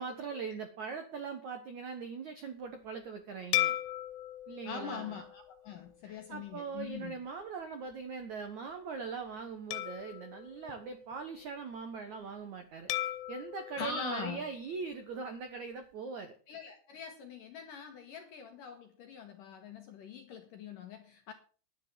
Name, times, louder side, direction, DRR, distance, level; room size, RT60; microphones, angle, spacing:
voice 1, 0.0-3.8 4.5-5.2 6.0-16.3, right 5 dB, 80° right, 1.6 m, -41 dB
sound 1, 3.5-6.2 6.8-7.0 9.7-11.5 12.9-15.2, left 15 dB, 85° left, 3.4 m, -38 dB
voice 2, 4.7-7.2 13.8-14.4 16.5-21.3, left 6 dB, 65° left, 2.1 m, -43 dB
11.0 x 9.5 x 7.0 m
omnidirectional pair, 5.6 m